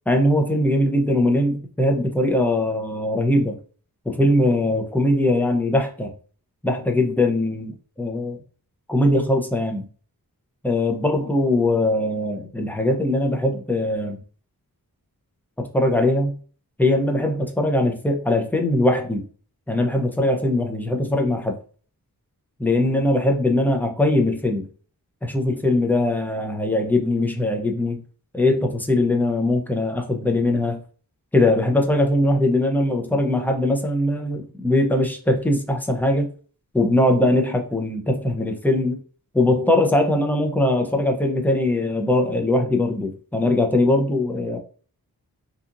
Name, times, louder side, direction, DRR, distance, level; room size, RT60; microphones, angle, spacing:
voice 1, 0.1-3.6 4.1-6.1 6.6-8.4 8.9-9.9 10.6-14.2 15.6-16.4 16.8-19.2 19.7-21.6 22.6-24.7 25.2-28.0 28.3-30.8 31.3-36.3 36.7-39.0 39.3-44.6, left 1 dB, 5° left, 0.5 m, -21 dB
2.8 x 2.4 x 2.5 m
wide cardioid pair, 100°, 36 cm